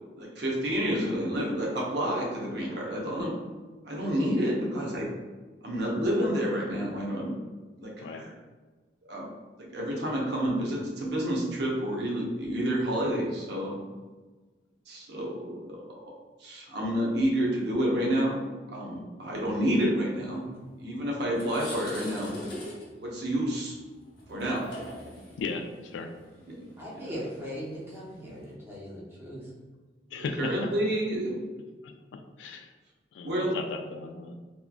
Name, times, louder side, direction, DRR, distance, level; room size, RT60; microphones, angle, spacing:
voice 1, 0.2-3.3 3.8-5.1 5.6-7.3 7.8-8.3 9.1-9.3 9.6-13.8 14.9-15.7 16.0-16.1 16.4-18.4 18.7-20.4 20.8-22.3 23.0-23.7 24.3-24.6 26.6-27.1 30.1-31.4 33.2-33.5, equal, 60° right, -3 dB, 0.7 m, -29 dB
sound 1, 20.7-20.9 21.2-28.5, left 1 dB, 60° left, 0.8 m, -43 dB
voice 2, 26.8-29.4, equal, 10° right, -5 dB, 0.6 m, -39 dB
voice 3, 30.1-30.5 32.4-32.7 33.1-34.3, left 4 dB, 80° left, 5 dB, 0.3 m, -35 dB
2.9 x 2.4 x 2.2 m, 1.3 s
head